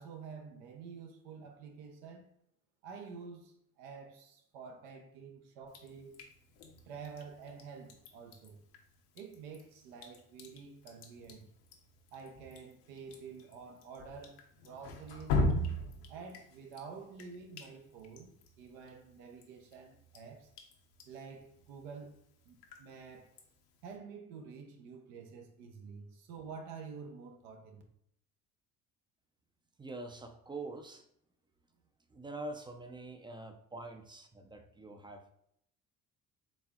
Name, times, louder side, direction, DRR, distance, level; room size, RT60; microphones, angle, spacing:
voice 1, 0.0-2.3 2.8-6.2 6.8-8.7 9.1-11.5 12.1-15.4 16.1-20.5 21.1-22.1 22.4-23.3 23.8-27.8, right 5 dB, 75° right, 0.7 m, -49 dB
Drip, 5.7-24.0, left 2 dB, 65° left, 0.8 m, -41 dB
voice 2, 29.8-31.0 32.1-35.2, right 2 dB, 10° right, 0.4 m, -45 dB
4.2 x 3.5 x 2.3 m
hypercardioid pair, 65°, 41 cm